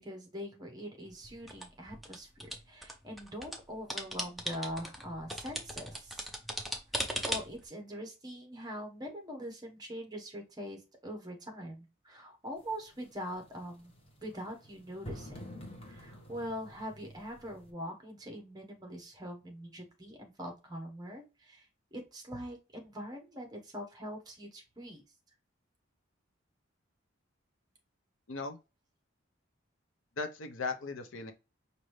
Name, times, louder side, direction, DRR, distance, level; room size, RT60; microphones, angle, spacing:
voice 1, 0.0-6.3 7.2-13.9 14.2-15.4 15.9-25.0, equal, 20° right, 1.1 m, -43 dB
sound 1, 1.1-3.6 3.9-7.7, equal, ahead, 0.5 m, -38 dB
sound 2, 12.6-17.7, equal, 30° left, 1.1 m, -49 dB
voice 2, 30.2-31.3, left 3 dB, 75° left, 0.7 m, -37 dB
5.2 x 2.7 x 3.1 m
head